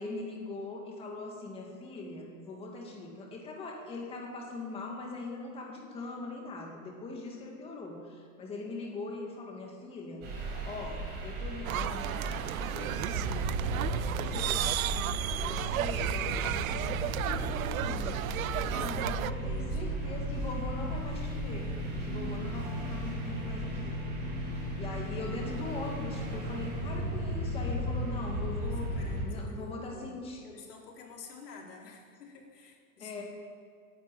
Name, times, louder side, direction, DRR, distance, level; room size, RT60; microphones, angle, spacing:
voice 1, 0.0-10.3 10.7-13.5 13.9-18.2 18.7-21.7 22.0-24.0 24.8-29.0 29.2-30.4 33.0-33.2, left 3 dB, 10° left, 0 dB, 2.0 m, -41 dB
sound 1, 10.2-29.3, right 1 dB, 25° right, 5.7 m, -35 dB
sound 2, 11.6-19.3, right 13 dB, 65° right, 0.6 m, -34 dB
voice 2, 19.0-19.8 28.6-30.2 30.4-33.2, left 5 dB, 85° left, -1 dB, 4.1 m, -50 dB
14.5 x 11.0 x 9.1 m, 2.2 s
supercardioid pair, 170°, 46 cm